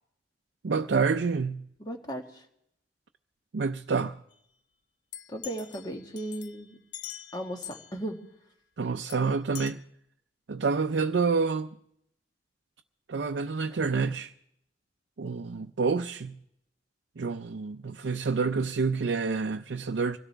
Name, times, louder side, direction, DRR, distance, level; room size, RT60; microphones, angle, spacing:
voice 1, 0.6-1.7 3.5-4.2 8.8-9.8 10.5-11.7 13.1-14.3 15.2-16.4 17.2-20.2, right 4 dB, 80° right, 0.5 m, -28 dB
voice 2, 1.8-2.4 5.3-6.8 7.3-8.2, right 1 dB, 25° left, 1.8 m, -36 dB
sound 1, 5.1-8.0 9.1-9.2 9.6-9.7, left 11 dB, 75° left, 0.7 m, -44 dB
24.5 x 17.0 x 3.4 m
head